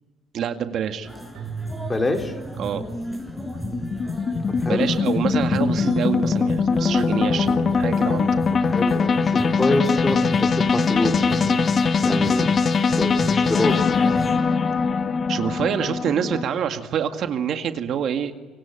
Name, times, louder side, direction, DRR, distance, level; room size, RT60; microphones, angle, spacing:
voice 1, 0.3-1.1 2.6-2.8 4.6-8.4 15.3-18.4, right 8 dB, 60° right, 7 dB, 1.9 m, -26 dB
sound 1, 1.0-14.4, right 1 dB, 5° right, 5.5 m, -35 dB
Keyboard (musical), 1.3-3.6, right 6 dB, 80° right, 6.5 m, -38 dB
voice 2, 1.8-2.4 4.6-4.9 8.7-12.6 12.9-13.8, left 2 dB, 20° left, 4 dB, 3.7 m, -26 dB
sound 2, 2.2-16.4, left 5 dB, 40° left, 1.6 m, -22 dB
26.5 x 24.0 x 9.1 m, 1.3 s
cardioid pair, 90°, 0 cm